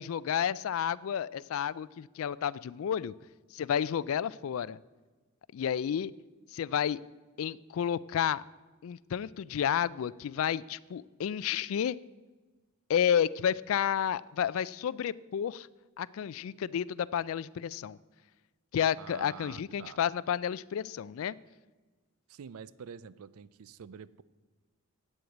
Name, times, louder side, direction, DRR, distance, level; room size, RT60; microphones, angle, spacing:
voice 1, 0.0-3.1 3.5-4.8 5.5-6.1 6.5-7.0 7.4-8.4 8.8-12.0 12.9-15.7 16.0-18.0 18.7-21.4, left 8 dB, 70° left, 21 dB, 0.3 m, -31 dB
voice 2, 19.0-20.0 22.3-24.2, right 6 dB, 80° right, 18 dB, 0.4 m, -47 dB
8.6 x 7.9 x 7.9 m, 1.3 s
head